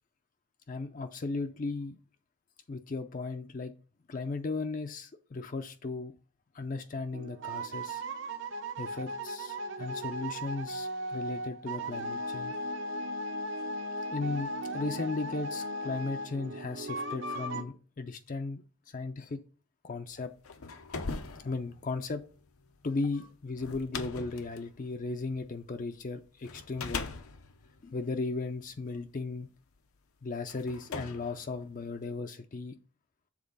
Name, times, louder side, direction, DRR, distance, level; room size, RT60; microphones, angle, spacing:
voice 1, 0.7-2.0 2.7-3.7 4.1-6.1 6.5-8.0 8.8-12.5 14.0-14.5 14.7-19.4 19.9-20.3 21.4-22.2 22.8-27.1 27.8-29.5 30.2-32.7, left 3 dB, 40° left, 0.4 m, -36 dB
sound 1, 7.1-17.6, right 1 dB, 55° right, 0.7 m, -37 dB
sound 2, 20.3-25.8 26.4-28.9 29.8-29.9 30.5-32.2, left 4 dB, 90° left, 0.8 m, -41 dB
7.3 x 3.8 x 5.3 m
head